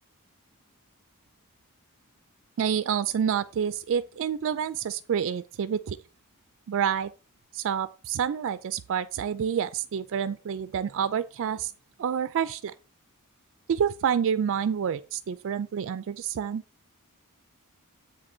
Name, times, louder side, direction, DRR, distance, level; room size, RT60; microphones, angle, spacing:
voice 1, 2.6-6.0 6.7-7.1 7.5-11.7 12.0-12.7 13.7-16.6, right 8 dB, 60° right, 0.4 m, -28 dB
7.9 x 3.8 x 5.9 m
head